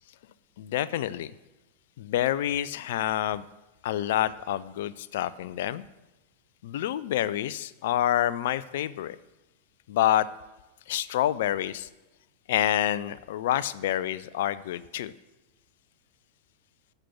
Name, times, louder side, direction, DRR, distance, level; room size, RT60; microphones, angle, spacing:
voice 1, 0.6-1.3 2.0-3.4 3.8-5.8 6.6-9.2 9.9-10.3 10.9-11.9 12.5-15.1, left 12 dB, 55° left, 17 dB, 0.5 m, -27 dB
12.5 x 7.9 x 6.0 m, 1.0 s
figure-of-eight pair, 90°, 0 cm